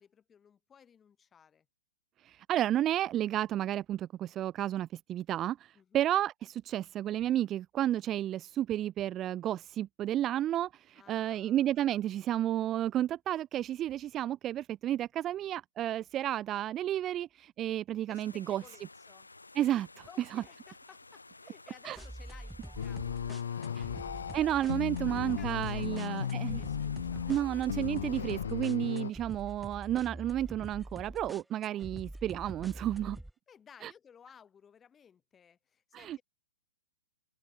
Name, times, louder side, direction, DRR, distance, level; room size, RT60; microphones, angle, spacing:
voice 1, 0.0-1.7 5.7-6.1 11.0-11.7 18.1-19.3 20.1-24.2 25.1-28.0 33.5-36.2, left 7 dB, 15° left, 5.6 m, -59 dB
voice 2, 2.2-18.6 19.5-20.1 20.3-20.4 21.8-22.0 23.8-23.9 24.3-26.6 27.3-33.2 33.8-33.9 35.9-36.2, right 12 dB, 25° right, 0.8 m, -32 dB
sound 1, 18.1-28.6, left 3 dB, 85° left, 3.0 m, -55 dB
sound 2, 22.0-33.3, right 1 dB, ahead, 3.1 m, -45 dB
sound 3, 22.8-29.1, left 8 dB, 65° left, 0.7 m, -36 dB
figure-of-eight pair, 120°, 0 cm